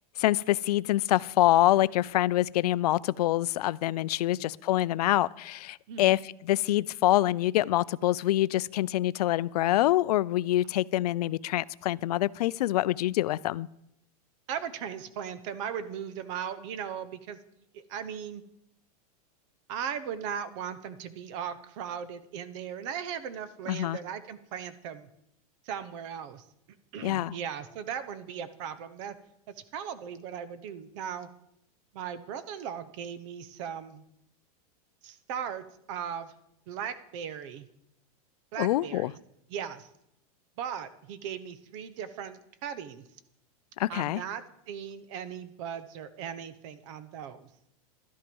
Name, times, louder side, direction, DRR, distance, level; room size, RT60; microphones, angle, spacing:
voice 1, 0.2-13.7 23.7-24.0 27.0-27.3 38.6-39.1 43.8-44.2, left 15 dB, 80° left, 19 dB, 0.4 m, -26 dB
voice 2, 5.9-6.2 14.5-17.4 17.7-18.4 19.7-25.1 25.6-26.5 26.9-29.1 29.7-31.3 31.9-34.0 35.0-36.3 36.7-37.7 38.5-39.2 39.5-39.9 40.6-43.1 43.9-47.5, right 8 dB, 50° right, 13 dB, 1.0 m, -38 dB
12.0 x 10.5 x 5.4 m, 0.77 s
supercardioid pair, 145°, 20 cm